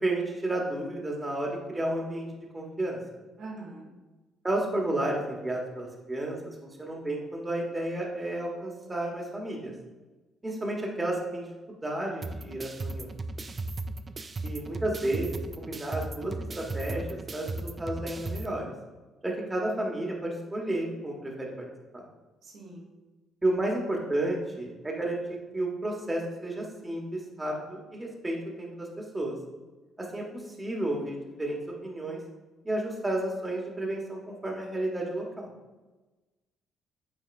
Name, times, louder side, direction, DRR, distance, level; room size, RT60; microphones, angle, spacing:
voice 1, 0.0-2.3 2.5-3.0 4.4-6.4 6.8-9.7 10.4-11.5 11.8-13.1 14.4-18.6 19.2-21.5 21.9-22.1 23.4-25.2 25.5-29.3 30.0-30.2 30.6-32.2 32.6-35.5, right 1 dB, 20° right, -1 dB, 1.6 m, -32 dB
voice 2, 3.4-3.9 22.4-22.9, right 2 dB, 60° right, -3 dB, 1.5 m, -43 dB
sound 1, 12.2-18.5, right 2 dB, 35° right, 0.4 m, -36 dB
9.0 x 4.1 x 2.6 m, 1.2 s
hypercardioid pair, 50°, 0 cm